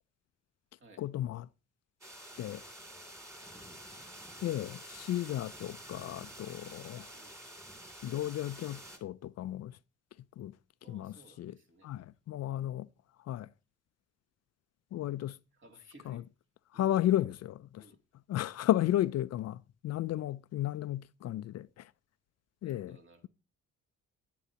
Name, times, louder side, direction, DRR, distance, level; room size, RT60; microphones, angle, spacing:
voice 1, 1.0-1.5 2.4-2.6 4.4-7.1 8.0-9.8 10.4-10.6 10.9-11.5 11.8-12.9 13.2-13.5 14.9-15.4 16.1-16.2 16.7-17.8 18.3-21.9 22.6-23.0, left 13 dB, 60° left, 0.4 m, -33 dB
sound 1, 2.0-9.0, right 1 dB, 10° right, 2.8 m, -49 dB
voice 2, 10.8-11.9 15.0-15.2 15.5-16.2 16.7-16.8 17.8-18.0 19.9-20.1 22.6-23.3, right 2 dB, 40° right, 2.6 m, -59 dB
11.5 x 9.5 x 2.9 m
cardioid pair, 90°, 30 cm